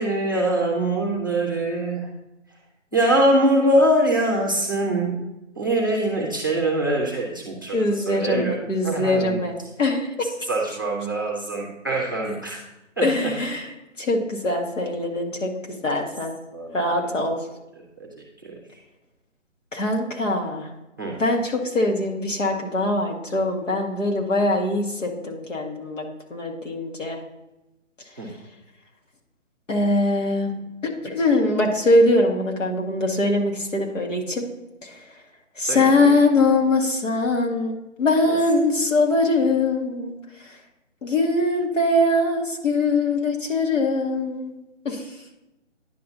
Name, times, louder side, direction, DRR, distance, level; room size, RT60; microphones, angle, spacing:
voice 1, 0.0-2.1 2.9-5.1 5.6-8.5 8.8-9.4 10.5-12.6 13.0-13.1 16.5-17.1 18.0-18.5 21.0-21.2 28.2-28.3 35.6-36.1 38.3-38.4, right 1 dB, 15° right, -1 dB, 0.6 m, -23 dB
voice 2, 7.7-10.3 13.0-16.4 16.7-17.4 19.7-20.7 21.2-27.2 29.7-30.5 30.8-34.5 34.8-35.1 35.6-40.6 41.0-44.5 44.9-45.2, left 2 dB, 75° left, 1 dB, 1.9 m, -22 dB
10.0 x 5.9 x 2.8 m, 0.95 s
figure-of-eight pair, 160°, 38 cm